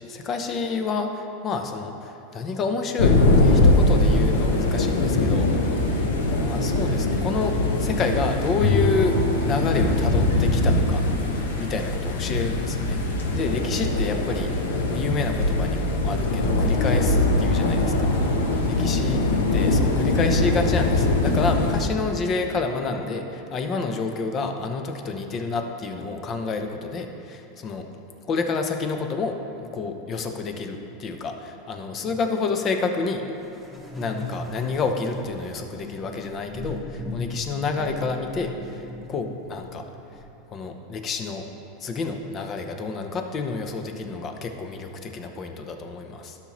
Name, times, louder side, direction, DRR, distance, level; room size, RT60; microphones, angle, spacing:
voice 1, 0.0-5.5 5.8-6.0 6.4-11.0 11.6-13.0 13.3-14.5 14.9-18.1 18.7-19.2 19.5-27.9 28.3-33.2 34.0-39.9 40.5-41.5 41.8-46.4, left 4 dB, 35° left, 5 dB, 0.8 m, -29 dB
sound 1, 3.0-21.8, left 2 dB, 85° left, 0.9 m, -22 dB
Bowed string instrument, 8.6-12.9, left 2 dB, 65° left, 1.6 m, -29 dB
sound 2, 33.4-40.2, left 2 dB, 5° left, 1.4 m, -37 dB
11.5 x 5.9 x 3.1 m, 2.8 s
hypercardioid pair, 105°, 0 cm